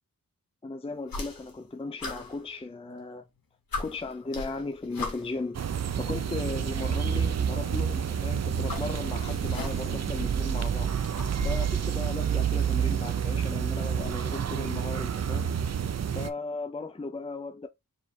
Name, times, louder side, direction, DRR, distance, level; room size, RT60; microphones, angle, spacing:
voice 1, 0.6-3.3 3.8-5.7 6.0-11.1 11.4-15.5 16.1-17.7, left 3 dB, 15° left, 0.5 m, -36 dB
sound 1, 1.0-1.7 2.0-3.1 3.4-3.5 3.7-5.5 6.5-6.6 8.0-10.1 10.4-11.8, left 3 dB, 75° left, 1.3 m, -38 dB
sound 2, 5.5-16.3, right 8 dB, 50° right, 0.4 m, -29 dB
4.7 x 2.7 x 3.1 m
wide cardioid pair, 90°, 36 cm